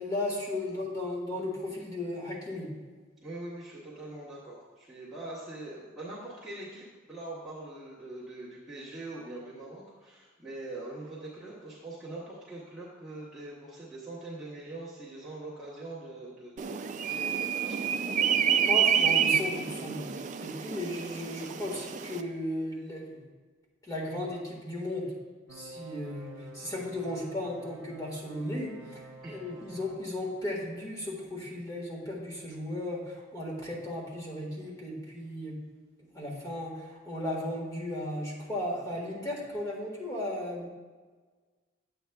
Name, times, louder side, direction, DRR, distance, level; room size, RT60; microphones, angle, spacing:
voice 1, 0.0-2.7 18.7-23.2 23.9-25.1 25.5-35.5 36.1-40.7, left 1 dB, 15° left, -2 dB, 1.7 m, -35 dB
voice 2, 3.2-18.3 29.2-29.8, right 2 dB, ahead, -11 dB, 1.4 m, -43 dB
sound 1, 16.6-22.2, right 8 dB, 35° right, 0.3 m, -28 dB
sound 2, 25.5-30.5, right 2 dB, 80° right, 0.8 m, -50 dB
11.0 x 8.1 x 2.3 m, 1.4 s
head